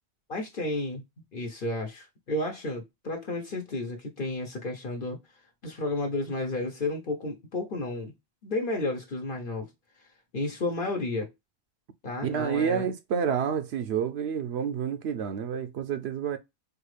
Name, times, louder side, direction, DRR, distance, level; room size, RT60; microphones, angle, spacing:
voice 1, 0.3-1.0 1.3-5.2 5.6-8.1 8.4-9.7 10.3-11.3 12.0-12.9, left 2 dB, 55° left, 1.0 m, -32 dB
voice 2, 12.2-16.4, right 7 dB, 80° right, 0.8 m, -29 dB
4.4 x 2.4 x 3.1 m
omnidirectional pair, 1.1 m